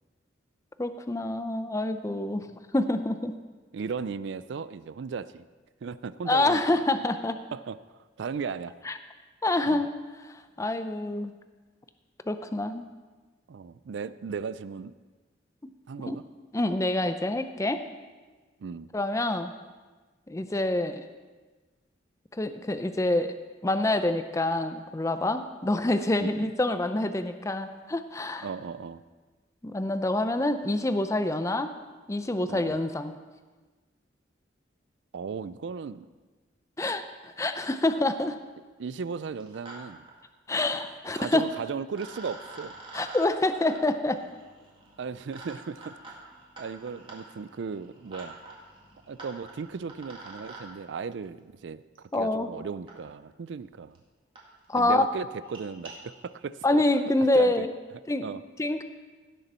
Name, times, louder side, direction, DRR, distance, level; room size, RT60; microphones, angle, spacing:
voice 1, 0.8-2.5 2.7-3.3 6.3-7.4 8.9-9.0 9.4-9.9 10.3-11.3 12.3-12.9 16.0-16.2 16.5-17.8 18.9-19.5 20.3-21.1 22.3-23.3 23.6-28.5 29.6-31.7 32.1-33.1 36.8-38.4 40.5-41.5 42.9-44.2 52.1-52.5 54.7-55.1 56.6-57.7 58.1-58.3 58.6-58.8, left 2 dB, 15° left, 9 dB, 0.5 m, -26 dB
voice 2, 3.7-5.5 5.8-6.6 7.5-8.7 9.7-9.8 13.5-14.9 15.9-16.2 18.6-18.9 26.2-26.5 28.4-29.0 32.5-32.8 35.1-36.1 36.8-37.0 38.8-40.1 41.1-42.8 45.0-46.2 46.6-48.4 49.1-54.0 54.8-57.7 58.2-58.4, right 5 dB, 75° right, 16 dB, 0.4 m, -36 dB
sound 1, 37.6-37.7 38.0-38.4 39.2-39.8 40.0-40.1 41.4-41.5 41.9-50.6 52.0-52.1 52.9-53.0 53.6-53.7 53.9-54.0 54.4-54.5 54.7-54.9 55.3-55.9, right 2 dB, 30° right, 2.0 m, -47 dB
16.5 x 6.8 x 4.3 m, 1.3 s
head